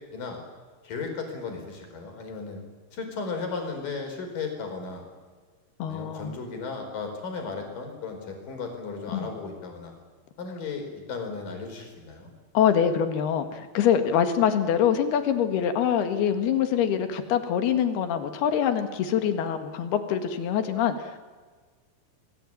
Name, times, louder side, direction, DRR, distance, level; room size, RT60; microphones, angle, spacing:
voice 1, 0.8-2.6 2.9-5.0 5.9-9.9 10.4-12.3, left 4 dB, 60° left, 4 dB, 6.2 m, -35 dB
voice 2, 5.8-6.3 9.1-9.3 12.6-21.2, left 8 dB, 85° left, 8 dB, 3.8 m, -24 dB
27.5 x 20.5 x 8.9 m, 1.4 s
omnidirectional pair, 4.5 m